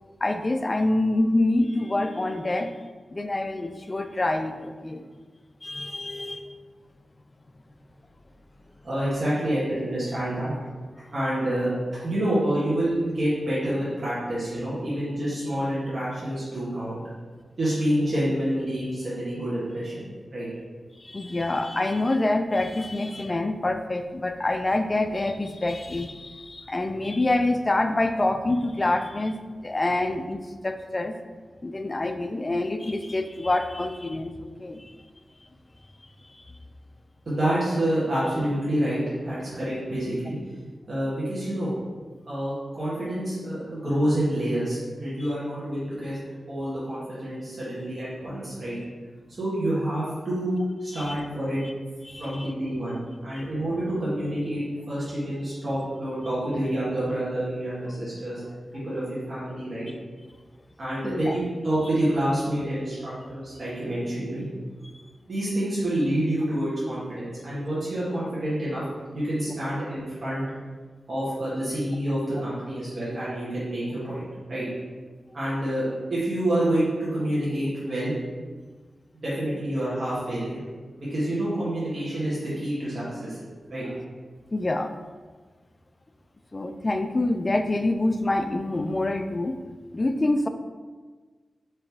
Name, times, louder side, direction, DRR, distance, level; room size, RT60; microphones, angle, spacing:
voice 1, 0.2-2.8 3.1-5.0 5.6-6.5 21.0-29.4 29.6-31.1 31.6-34.9 36.3-36.4 50.9-51.2 52.0-52.5 53.3-53.5 61.0-61.3 84.5-84.9 86.5-89.6 89.9-90.5, left 2 dB, 35° left, 8 dB, 0.3 m, -26 dB
voice 2, 8.8-10.5 11.1-17.0 17.6-20.5 37.2-40.3 40.9-41.8 42.3-46.2 46.5-48.8 49.4-50.5 50.8-51.6 52.2-58.4 58.7-59.9 60.8-64.5 65.2-68.8 69.1-70.4 71.1-74.6 75.3-78.1 79.2-80.6 81.0-83.9, right 1 dB, 55° right, -10 dB, 1.5 m, -28 dB
4.5 x 3.2 x 3.5 m, 1.4 s
cardioid pair, 70°, 0 cm